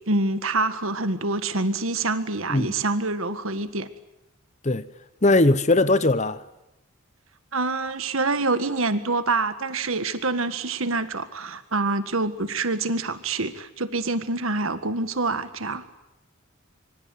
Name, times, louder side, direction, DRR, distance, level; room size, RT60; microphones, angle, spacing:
voice 1, 0.1-3.9 7.5-15.8, right 3 dB, 70° right, 1.8 m, -26 dB
voice 2, 5.2-6.4, left 2 dB, 30° left, 0.9 m, -19 dB
25.5 x 24.0 x 9.3 m
head